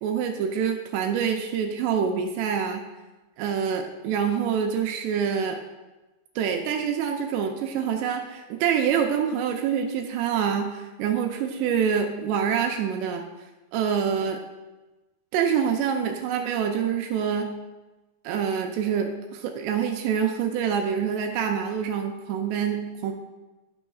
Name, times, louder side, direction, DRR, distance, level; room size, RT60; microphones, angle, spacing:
voice 1, 0.0-2.9 3.4-5.6 6.4-13.2 13.7-14.4 15.3-17.5 18.2-23.1, right 7 dB, 85° right, 3 dB, 2.5 m, -26 dB
11.0 x 6.2 x 2.3 m, 1.1 s
omnidirectional pair, 5.2 m